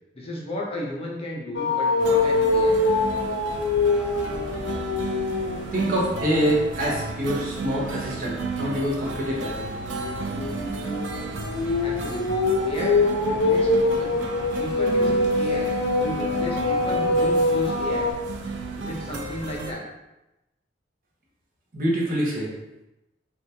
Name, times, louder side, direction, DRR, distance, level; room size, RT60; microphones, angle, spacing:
voice 1, 0.1-2.8 11.8-14.1 14.6-18.2 18.8-19.8, equal, 35° left, -3 dB, 0.6 m, -34 dB
sound 1, 1.5-5.7 6.1-6.5 8.9-18.1, left 2 dB, 85° left, 0.6 m, -24 dB
sound 2, 2.0-19.7, right 3 dB, 75° right, 0.4 m, -33 dB
voice 2, 5.7-9.5 21.7-22.5, equal, 50° right, -4 dB, 0.8 m, -25 dB
3.3 x 2.4 x 2.7 m, 0.95 s
head